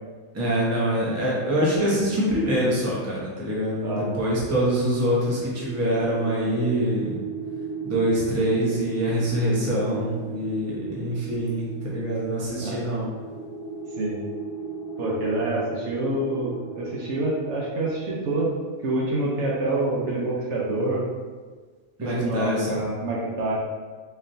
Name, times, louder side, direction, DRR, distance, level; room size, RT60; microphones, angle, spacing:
voice 1, 0.3-7.2 7.8-13.1 22.0-22.7, equal, 15° right, -6 dB, 0.7 m, -25 dB
sound 1, 5.2-19.6, right 5 dB, 50° left, 0.9 m, -37 dB
voice 2, 15.0-18.5 18.8-21.1 22.0-23.5, right 2 dB, 60° right, -5 dB, 1.0 m, -26 dB
4.2 x 3.1 x 2.6 m, 1.4 s
omnidirectional pair, 1.4 m